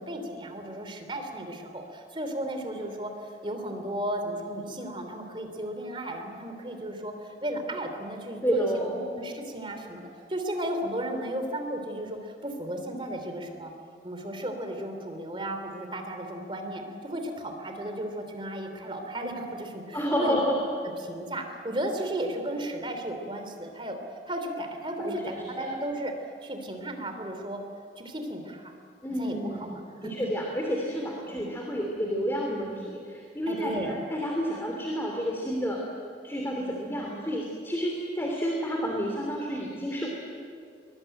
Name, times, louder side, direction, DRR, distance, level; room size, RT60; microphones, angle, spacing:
voice 1, 0.0-13.7 14.0-20.4 21.0-24.0 24.3-26.1 26.4-27.6 28.0-28.8 29.2-29.4 30.0-30.3 31.3-31.6 33.5-34.0, right 1 dB, 30° right, 5 dB, 3.1 m, -34 dB
voice 2, 8.4-9.1 19.9-20.6 25.0-25.4 29.0-35.8 36.2-40.1, equal, 15° left, 0 dB, 2.9 m, -30 dB
23.0 x 21.5 x 9.0 m, 2.3 s
head